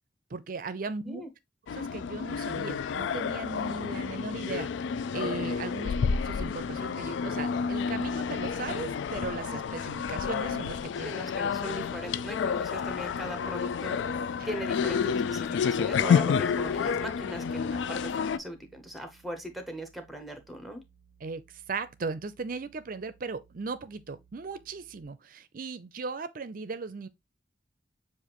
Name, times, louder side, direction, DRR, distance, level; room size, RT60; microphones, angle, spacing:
voice 1, 0.3-1.3 1.7-11.1 21.2-27.1, right 4 dB, 50° right, 0.5 m, -37 dB
sound 1, 1.7-18.4, left 6 dB, 75° left, 0.3 m, -30 dB
sound 2, 6.2-25.0, right 5 dB, 60° left, 1.5 m, -61 dB
voice 2, 11.0-14.0 14.4-20.8, equal, ahead, 0.9 m, -39 dB
7.0 x 2.5 x 3.0 m
head